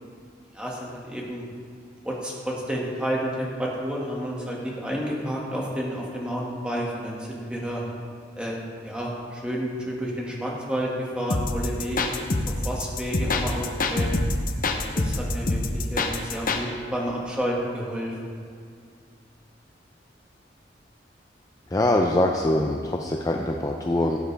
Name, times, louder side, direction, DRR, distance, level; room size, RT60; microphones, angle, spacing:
voice 1, 0.5-1.4 2.0-7.8 8.4-12.1 12.5-14.1 14.7-18.1, equal, 5° right, -4 dB, 1.8 m, -30 dB
sound 1, 11.3-16.6, left 2 dB, 50° left, 0.8 m, -25 dB
voice 2, 21.7-24.2, left 1 dB, 20° left, 2 dB, 0.4 m, -23 dB
16.5 x 8.0 x 3.4 m, 2.2 s
head